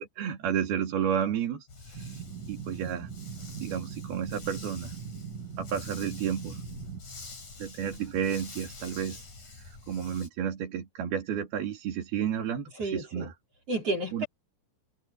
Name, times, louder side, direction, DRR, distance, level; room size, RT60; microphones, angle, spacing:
voice 1, 0.0-2.2 2.5-3.1 3.6-5.0 5.6-6.6 7.6-9.2 9.6-13.3 14.1-14.3, right 8 dB, 75° right, 4.6 m, -32 dB
Dog, 1.7-10.3, left 3 dB, 50° left, 8.6 m, -46 dB
sound 1, 1.9-7.0, right 7 dB, 55° right, 2.5 m, -41 dB
voice 2, 12.7-13.3 13.7-14.3, right 2 dB, 40° right, 5.0 m, -31 dB
omnidirectional pair, 4.5 m